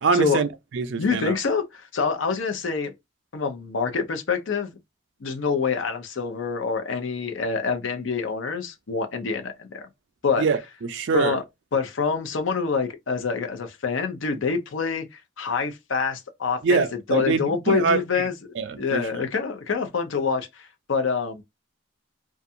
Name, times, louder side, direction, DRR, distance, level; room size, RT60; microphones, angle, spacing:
voice 1, 0.0-1.4 10.4-11.4 16.6-18.3 18.6-19.3, right 4 dB, 65° right, 0.4 m, -24 dB
voice 2, 1.0-2.9 3.3-4.8 5.2-9.9 10.2-10.5 11.1-11.4 11.7-16.8 17.1-18.3 18.8-21.4, left 5 dB, 75° left, 0.6 m, -26 dB
2.5 x 2.2 x 2.7 m
head